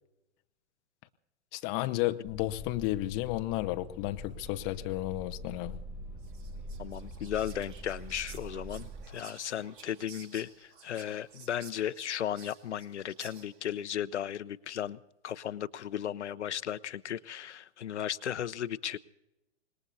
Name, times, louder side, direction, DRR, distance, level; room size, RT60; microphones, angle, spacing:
voice 1, 1.5-5.8, left 17 dB, 25° left, 0.5 m, -32 dB
sound 1, 2.2-9.1, equal, 5° right, 2.2 m, -44 dB
Whispering, 6.2-13.8, right 6 dB, 45° right, 2.1 m, -54 dB
voice 2, 6.8-15.0 15.2-19.0, left 10 dB, 75° left, 0.7 m, -35 dB
25.5 x 20.5 x 2.7 m
hypercardioid pair, 120°, 35 cm